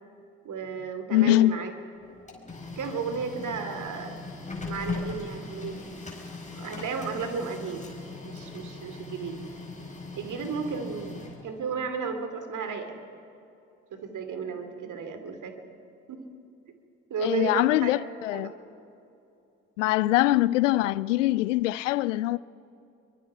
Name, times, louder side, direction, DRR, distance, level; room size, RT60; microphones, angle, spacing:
voice 1, 0.4-1.7 2.8-4.1 4.6-5.9 6.5-7.8 8.2-9.3 10.2-13.0 13.9-15.5 16.1-16.2 17.1-17.9 18.3-18.5, right 5 dB, 55° right, 2.7 m, -33 dB
voice 2, 1.1-1.6 17.2-18.5 19.8-22.4, left 16 dB, 85° left, 0.5 m, -23 dB
Printer, 2.0-11.8, left 3 dB, 20° left, 5.1 m, -39 dB
25.5 x 23.0 x 4.8 m
hypercardioid pair, 45°, 36 cm